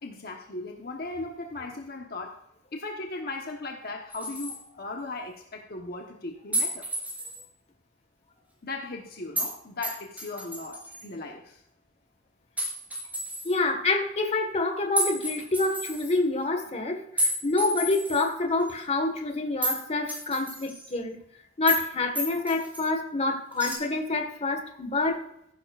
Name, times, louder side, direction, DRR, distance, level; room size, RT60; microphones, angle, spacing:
voice 1, 0.0-2.3 2.7-6.9 8.6-11.6, left 2 dB, 55° left, 1 dB, 1.2 m, -37 dB
sound 1, 4.1-4.6 6.5-7.4 9.4-9.5 9.8-11.0 12.6-13.6 15.0-16.2 17.2-18.3 18.7-18.8 19.6-19.8 20.1-20.9 21.7-21.9 22.2-22.8 23.6-23.8, equal, 10° right, 4.1 m, -31 dB
voice 2, 13.4-21.1 21.6-25.2, left 2 dB, 35° left, 4 dB, 1.6 m, -27 dB
15.0 x 12.0 x 2.5 m, 0.79 s
head